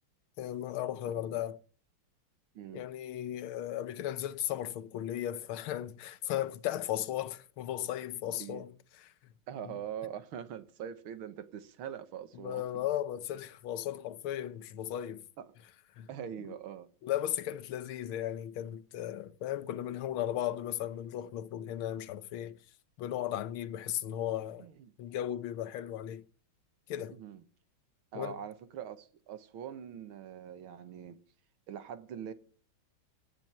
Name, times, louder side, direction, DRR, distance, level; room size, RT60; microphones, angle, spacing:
voice 1, 0.4-1.6 2.7-8.7 9.0-9.1 9.7-9.8 12.4-15.2 16.0-16.1 17.0-22.6 23.0-24.7 25.0-26.2 26.9-27.2 28.1-28.4, left 12 dB, 85° left, 1.7 m, -36 dB
voice 2, 1.1-1.4 2.6-2.9 8.4-8.6 9.5-12.9 15.4-15.5 16.1-16.9 24.6-24.9 27.1-27.4 28.1-31.2 31.7-32.3, right 9 dB, 90° right, 2.0 m, -43 dB
17.5 x 6.1 x 9.4 m
omnidirectional pair, 2.2 m